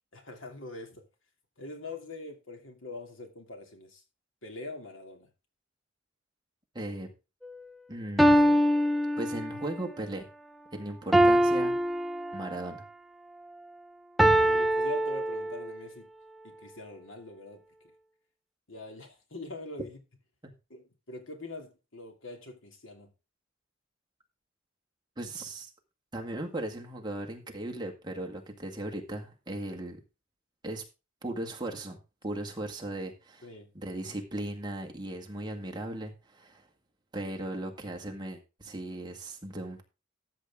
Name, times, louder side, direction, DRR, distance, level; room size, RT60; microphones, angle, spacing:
voice 1, 0.1-1.0 1.6-4.0 4.4-5.3 14.4-16.1 16.4-17.6 18.7-20.0 20.7-23.1 33.4-33.7, left 2 dB, 85° left, 2.8 m, -43 dB
voice 2, 6.7-7.1 7.9-8.5 9.2-10.3 10.7-11.8 12.3-12.8 20.4-20.5 25.2-25.7 26.1-30.0 30.6-30.8 31.2-32.0 32.2-33.5 33.7-36.7 37.1-39.8, right 1 dB, 20° right, 1.9 m, -37 dB
sound 1, 7.4-7.5 8.2-9.8 11.1-12.8 14.2-15.8, equal, ahead, 0.5 m, -24 dB
13.5 x 7.5 x 3.7 m
head